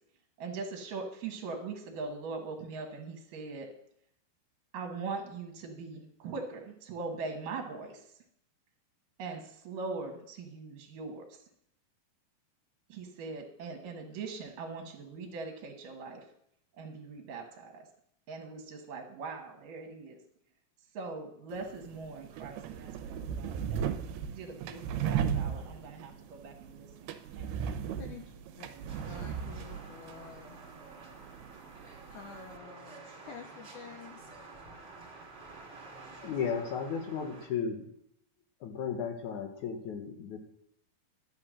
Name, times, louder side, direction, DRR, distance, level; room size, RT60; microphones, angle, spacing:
voice 1, 0.4-3.7 4.7-8.2 9.2-11.4 12.9-16.3 16.8-17.9 18.3-20.2 20.9-23.8 24.3-27.8 28.7-29.5, right 4 dB, 65° right, 2.6 m, -41 dB
sound 1, 21.5-32.6, right 8 dB, 80° right, 2.7 m, -37 dB
voice 2, 28.0-28.7 29.1-30.6 32.1-34.3, left 7 dB, 85° left, 1.7 m, -49 dB
sound 2, 28.9-37.5, right 3 dB, 35° right, 2.8 m, -50 dB
voice 3, 36.2-37.9 38.6-40.4, left 6 dB, 60° left, 2.3 m, -34 dB
12.0 x 8.7 x 6.3 m
omnidirectional pair, 4.8 m